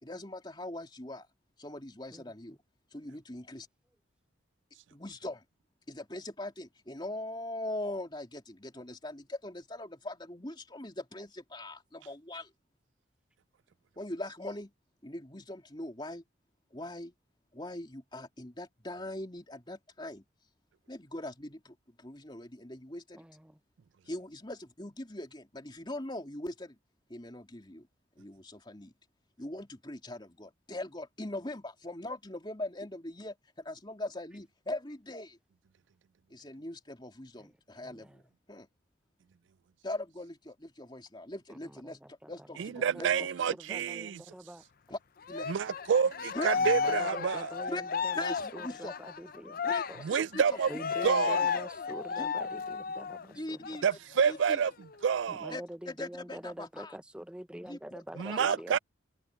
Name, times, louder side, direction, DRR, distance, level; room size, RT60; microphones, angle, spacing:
voice 1, 0.0-1.3 1.6-2.6 2.9-3.7 4.9-5.4 5.9-12.5 14.0-14.7 15.0-16.2 16.7-17.1 17.5-20.2 20.9-23.2 24.0-26.8 27.1-27.9 28.2-28.9 29.4-35.4 36.3-38.2 38.5-38.7 39.8-43.3 44.9-45.0 45.3-45.5 46.3-46.5 47.7-47.8 48.1-48.9 49.6-49.8 50.3-50.6 52.2-52.3 53.3-54.0 54.3-54.6 55.5-57.0 57.6-58.5, left 1 dB, 25° left, 3.3 m, -41 dB
voice 2, 23.1-23.6 37.4-37.5 37.8-38.2 41.5-42.3 42.8-44.6 46.5-50.1 50.7-53.8 55.3-58.8, right 1 dB, 5° right, 0.5 m, -45 dB
voice 3, 42.6-44.2 45.5-47.5 50.0-50.7 51.0-51.4 53.8-54.7 55.0-55.5 58.2-58.8, right 7 dB, 70° right, 0.4 m, -28 dB
Cheering, 45.3-53.3 53.6-53.8 54.2-55.2, left 5 dB, 45° left, 0.5 m, -33 dB
head